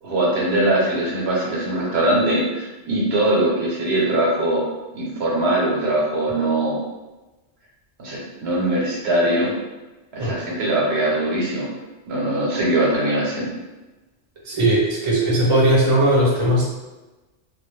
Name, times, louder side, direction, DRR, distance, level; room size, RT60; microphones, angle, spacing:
voice 1, 0.0-4.6 4.9-6.8 8.0-9.5 10.1-11.7 12.1-13.5, right 1 dB, 70° right, -4 dB, 0.9 m, -21 dB
voice 2, 14.4-16.7, right 1 dB, 35° right, -5 dB, 0.7 m, -18 dB
2.3 x 2.1 x 3.0 m, 1.1 s
omnidirectional pair, 1.1 m